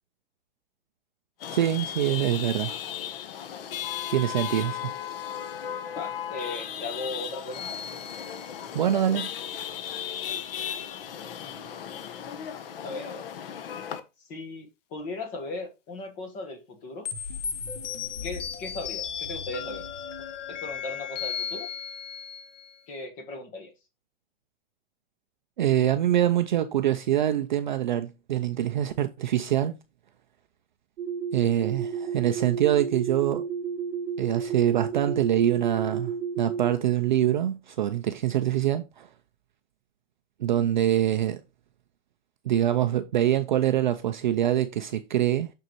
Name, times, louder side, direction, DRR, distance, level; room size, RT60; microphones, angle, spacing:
Chatter / Vehicle horn car horn honking / Traffic noise roadway noise, 1.4-14.0, left 9 dB, 50° left, 0.9 m, -36 dB
voice 1, 1.5-2.7 4.1-4.9 8.7-9.3 25.6-29.8 31.3-33.5 34.2-39.1 40.4-41.4 42.5-45.5, right 11 dB, 40° right, 0.4 m, -25 dB
voice 2, 5.9-7.8 11.4-11.9 12.8-13.3 14.2-17.1 18.2-19.9 20.6-21.7 22.9-23.7, left 2 dB, 20° left, 1.2 m, -37 dB
sound 1, 7.5-9.1 17.0-22.8, left 7 dB, 70° left, 1.5 m, -36 dB
sound 2, 31.0-36.7, right 6 dB, 70° right, 0.8 m, -32 dB
6.7 x 6.3 x 3.0 m
hypercardioid pair, 165°, 38 cm